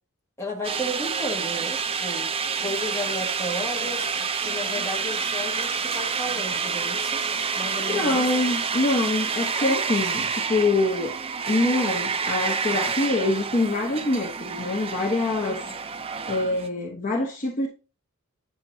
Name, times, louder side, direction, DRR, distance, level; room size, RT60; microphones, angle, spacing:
voice 1, 0.4-4.2 4.4-7.3 7.6-8.3 9.6-9.8 15.4-15.7, equal, 10° left, 1.7 m, -34 dB
sound 1, 0.6-16.7, right 5 dB, 25° right, 0.5 m, -28 dB
voice 2, 7.9-11.2 11.5-15.6 16.3-17.7, left 2 dB, 35° left, 1.0 m, -25 dB
8.7 x 7.2 x 2.7 m
head